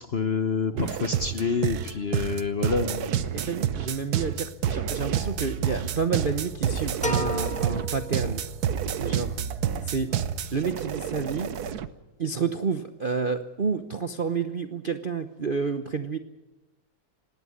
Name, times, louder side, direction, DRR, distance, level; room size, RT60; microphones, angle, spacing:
voice 1, 0.0-3.2, left 5 dB, 45° left, 10 dB, 0.9 m, -27 dB
sound 1, 0.8-11.9, right 9 dB, 60° right, 1.3 m, -29 dB
voice 2, 3.3-8.4 9.0-9.4 9.8-10.1 10.5-11.5 12.2-16.2, right 5 dB, 45° right, 8 dB, 0.7 m, -29 dB
sound 2, 7.0-8.8, left 1 dB, 5° left, 1.3 m, -33 dB
19.0 x 17.0 x 9.7 m, 1.1 s
omnidirectional pair, 2.0 m